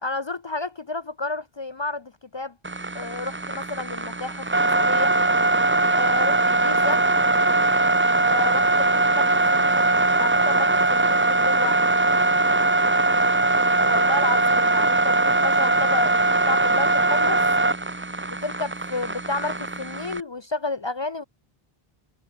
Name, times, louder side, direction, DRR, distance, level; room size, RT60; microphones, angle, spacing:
voice 1, 0.0-2.5 2.9-5.1 5.9-7.0 8.2-9.9 10.2-11.8 13.8-17.4 18.4-21.2, left 2 dB, 40° left, 0.4 m, -31 dB
sound 1, 2.6-20.2, right 2 dB, 15° right, 0.5 m, -21 dB
omnidirectional pair, 1.0 m